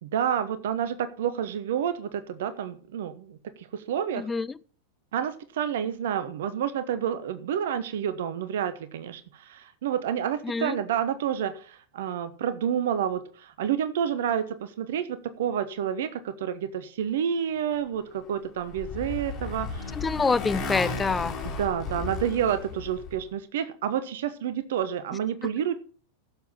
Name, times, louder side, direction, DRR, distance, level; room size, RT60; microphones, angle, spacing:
voice 1, 0.0-4.3 5.1-20.0 20.3-20.4 21.4-25.8, right 9 dB, 55° right, 1.0 m, -29 dB
voice 2, 4.2-4.5 10.4-10.8 20.0-21.3, left 4 dB, 15° left, 0.6 m, -26 dB
Motorcycle, 18.2-23.2, left 4 dB, 30° left, 3.5 m, -34 dB
15.5 x 7.2 x 5.7 m
figure-of-eight pair, 90°, 0 cm